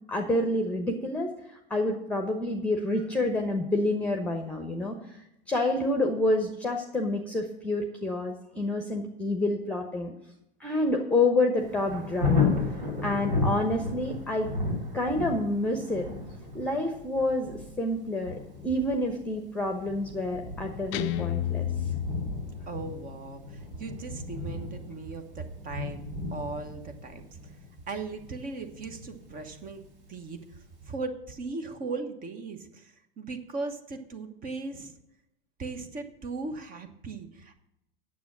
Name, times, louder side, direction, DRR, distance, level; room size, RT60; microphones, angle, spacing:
voice 1, 0.1-5.0 5.5-10.1 10.6-12.5 13.0-14.5 14.9-16.1 16.5-21.7, left 2 dB, 5° left, 3 dB, 1.1 m, -28 dB
Thunder, 11.6-30.3 30.8-30.9, left 4 dB, 65° right, 3.6 m, -34 dB
Guitar, 20.9-23.0, left 12 dB, 40° left, 0.6 m, -31 dB
voice 2, 22.7-26.0 26.3-27.5 27.9-29.8 30.1-34.9 35.6-37.6, right 3 dB, 30° right, 8 dB, 1.2 m, -38 dB
9.4 x 7.5 x 6.0 m, 0.84 s
figure-of-eight pair, 90°, 29 cm